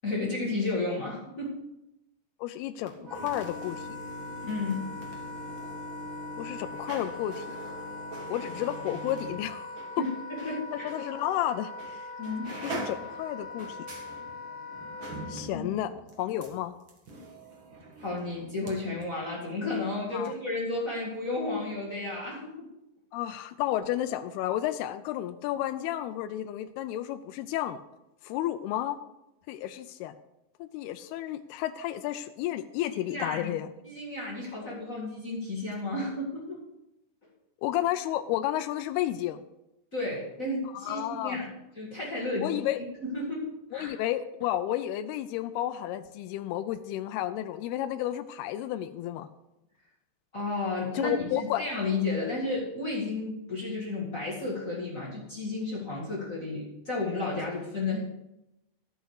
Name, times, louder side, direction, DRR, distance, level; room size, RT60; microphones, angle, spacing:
voice 1, 0.0-1.5 4.4-4.8 10.0-10.9 12.2-12.5 15.5-15.7 18.0-22.7 32.8-33.5 33.8-36.6 39.9-41.5 41.7-43.4 43.7-44.0 50.3-58.0, left 2 dB, 55° left, -4 dB, 0.9 m, -32 dB
voice 2, 2.4-3.9 6.4-7.6 8.3-10.0 10.8-12.1 12.6-13.8 15.3-16.7 20.1-20.3 23.1-27.8 28.2-29.0 29.5-30.2 30.6-33.7 37.6-39.4 40.7-41.4 42.4-42.8 43.7-49.3 50.9-51.7, left 13 dB, 90° left, 10 dB, 2.2 m, -32 dB
sound 1, 2.8-10.5 10.9-11.0 11.8-12.0 12.2-18.7 19.0-19.1, right 1 dB, 80° right, 1.0 m, -43 dB
Wind instrument woodwind instrument, 3.1-15.3, left 3 dB, 40° right, 6.1 m, -41 dB
12.5 x 7.9 x 4.8 m, 0.89 s
omnidirectional pair, 5.1 m